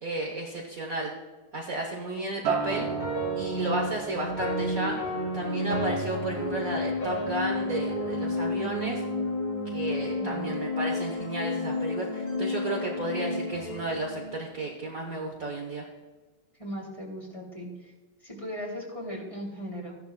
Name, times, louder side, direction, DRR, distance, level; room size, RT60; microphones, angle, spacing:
voice 1, 0.0-1.1 1.5-2.9 3.3-5.0 5.3-9.0 9.7-15.8, right 2 dB, 50° right, 0 dB, 1.3 m, -33 dB
Acoustic guitar, 2.4-6.9 7.3-7.6, right 7 dB, 85° right, 1.7 m, -36 dB
sound 1, 2.7-15.0, left 2 dB, 70° left, 4.3 m, -31 dB
voice 2, 10.1-10.5 16.6-17.9 18.2-20.0, equal, 15° left, -3 dB, 2.9 m, -38 dB
15.0 x 11.0 x 2.3 m, 1.2 s
omnidirectional pair, 2.3 m